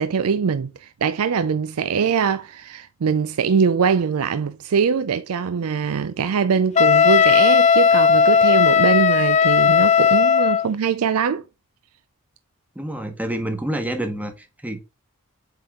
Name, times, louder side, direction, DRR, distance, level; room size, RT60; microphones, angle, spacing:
voice 1, 0.0-11.4, right 6 dB, 70° right, 0.4 m, -22 dB
Wind instrument woodwind instrument, 6.8-10.7, left 6 dB, 30° left, 0.3 m, -15 dB
voice 2, 12.7-14.8, right 1 dB, 5° right, 1.1 m, -28 dB
8.0 x 3.6 x 3.6 m
head